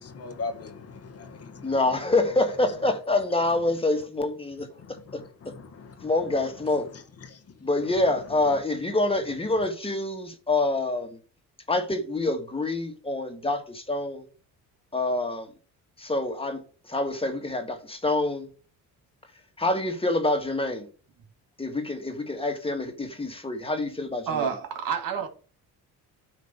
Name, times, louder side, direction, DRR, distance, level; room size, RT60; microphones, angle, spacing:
voice 1, 0.0-1.7 5.2-6.1 7.3-7.4, left 3 dB, 40° left, 1.3 m, -39 dB
voice 2, 1.6-4.7 5.1-5.2 6.0-6.9 7.6-11.2 11.7-14.2 14.9-15.5 16.0-16.6 16.9-18.5 19.6-20.9 21.6-24.5, left 2 dB, 15° left, 1.8 m, -26 dB
voice 3, 24.3-25.3, right 7 dB, 65° right, 2.1 m, -28 dB
9.5 x 3.3 x 6.6 m
cardioid pair, 95°, 36 cm